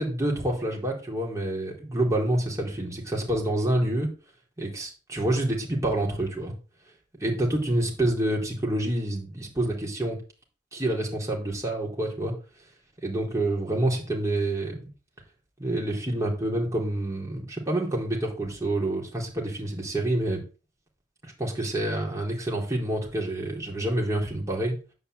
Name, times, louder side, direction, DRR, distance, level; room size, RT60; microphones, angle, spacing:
voice 1, 0.0-4.1 4.6-6.5 7.2-10.2 10.7-12.3 13.0-14.9 15.6-20.4 21.2-24.7, right 1 dB, 20° right, -2 dB, 4.3 m, -27 dB
10.0 x 5.4 x 8.4 m, 0.34 s
head